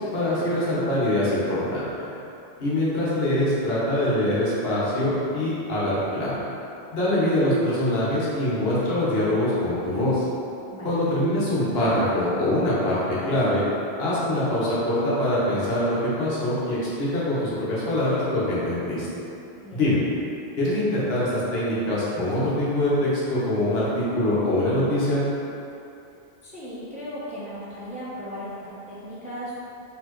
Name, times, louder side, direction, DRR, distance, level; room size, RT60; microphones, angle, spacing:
voice 1, 0.1-2.1 2.6-6.3 6.9-10.2 10.8-13.0 13.3-13.6 14.0-19.1 19.7-20.0 20.6-25.2, left 1 dB, 60° left, -9 dB, 1.3 m, -24 dB
voice 2, 26.4-29.5, equal, 10° right, -9 dB, 0.5 m, -37 dB
4.1 x 3.6 x 3.0 m, 2.8 s
omnidirectional pair, 1.2 m